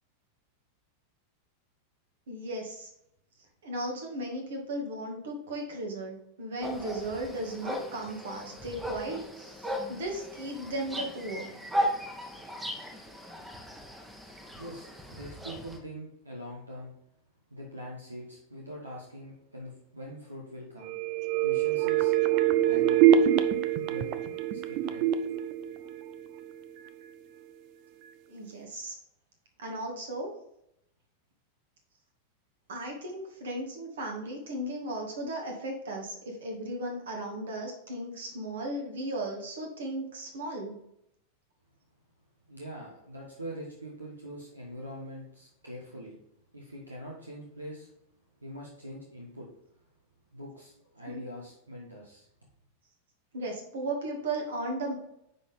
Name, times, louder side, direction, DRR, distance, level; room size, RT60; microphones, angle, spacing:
voice 1, 2.3-2.9 3.6-11.5 28.3-29.0 29.6-30.3 32.7-40.8 51.1-51.2 53.3-54.9, right 1 dB, 60° right, 1 dB, 2.0 m, -36 dB
sound 1, 6.6-15.8, equal, 10° right, 1.2 m, -37 dB
voice 2, 14.5-16.9 17.5-20.9 21.4-23.1 23.9-24.1 24.5-25.0 42.5-46.2 46.5-47.9 48.4-49.5 50.3-52.3, equal, 80° right, -3 dB, 1.4 m, -43 dB
sound 2, 20.8-26.5 26.9-27.0, right 10 dB, 45° right, 0.5 m, -25 dB
9.6 x 4.2 x 3.6 m, 0.77 s
figure-of-eight pair, 90°, 0 cm